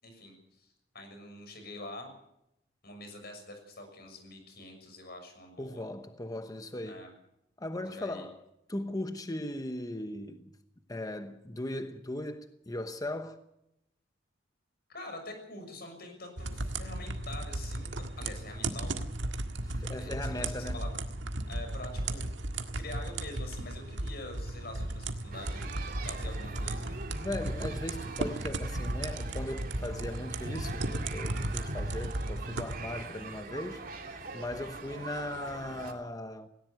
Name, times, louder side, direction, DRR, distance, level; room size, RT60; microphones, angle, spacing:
voice 1, 0.0-2.1 2.8-5.8 6.9-7.1 7.9-8.3 14.9-19.0 20.0-21.0 21.5-22.3 22.8-25.8 26.0-27.0, left 2 dB, 55° left, 6.4 m, -45 dB
voice 2, 5.6-7.1 7.6-10.5 10.9-13.4 18.2-18.3 19.6-20.8 26.2-26.3 27.1-34.1 34.3-36.5, left 1 dB, 20° left, 1.0 m, -38 dB
sound 1, 16.4-33.0, right 2 dB, 70° right, 1.7 m, -36 dB
sound 2, 25.3-35.9, right 3 dB, 50° right, 3.0 m, -42 dB
18.5 x 18.0 x 8.1 m
head